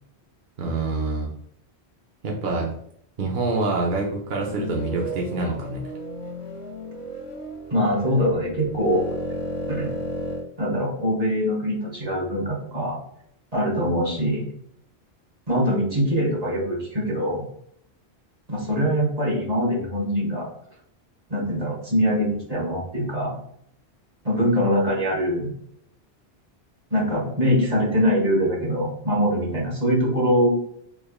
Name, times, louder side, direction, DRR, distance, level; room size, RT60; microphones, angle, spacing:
voice 1, 0.6-1.3 2.2-2.7 3.2-5.8, right 3 dB, 55° right, -2 dB, 0.7 m, -26 dB
sound 1, 4.2-10.4, equal, 50° left, 0.8 m, -33 dB
voice 2, 7.7-9.0 9.7-9.9 10.6-13.0 13.5-14.4 15.5-17.4 18.5-20.5 21.3-23.3 24.2-25.5 26.9-30.5, equal, 35° right, -5 dB, 1.4 m, -23 dB
3.5 x 3.3 x 2.3 m, 0.69 s
omnidirectional pair, 1.1 m